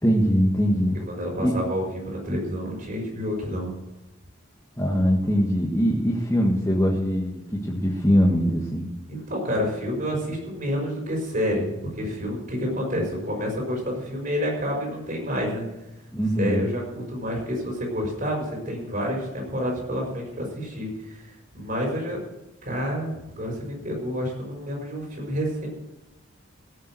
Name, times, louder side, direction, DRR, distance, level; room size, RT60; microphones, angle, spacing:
voice 1, 0.0-1.0 1.4-1.5 4.8-8.9 16.1-16.7, equal, 15° left, -4 dB, 1.7 m, -22 dB
voice 2, 1.1-3.7 9.1-15.6 16.4-21.3 21.5-22.2 22.6-25.7, equal, 40° right, 0 dB, 6.0 m, -29 dB
17.5 x 7.2 x 7.7 m, 0.96 s
head